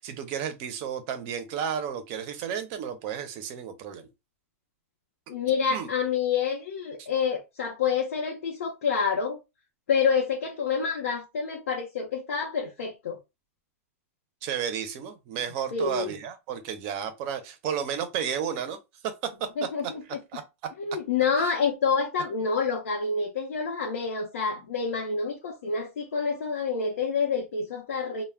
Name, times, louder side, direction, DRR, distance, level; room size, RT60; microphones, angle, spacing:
voice 1, 0.0-4.1 5.7-5.9 14.4-18.8 19.0-19.3 20.3-20.4, right 8 dB, 35° right, 0.5 m, -32 dB
voice 2, 5.3-9.4 9.9-13.2 15.7-16.1 19.6-20.0 20.8-28.2, left 5 dB, 85° left, 0.7 m, -28 dB
2.2 x 2.0 x 3.3 m
supercardioid pair, 165°, 8 cm